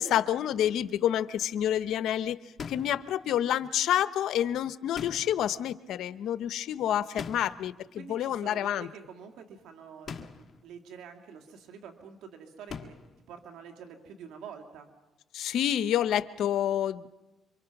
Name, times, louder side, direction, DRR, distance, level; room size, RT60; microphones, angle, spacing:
voice 1, 0.0-2.4 2.7-8.9 15.3-17.1, left 11 dB, 80° left, 14 dB, 0.8 m, -28 dB
sound 1, 2.6-3.1 5.0-5.6 7.2-7.7 10.1-10.6 12.7-13.2, left 6 dB, 50° left, 1.8 m, -41 dB
voice 2, 8.0-13.0 13.3-14.9, right 6 dB, 85° right, 4 dB, 2.3 m, -47 dB
27.5 x 24.5 x 6.0 m, 1.1 s
cardioid pair, 90°, 0 cm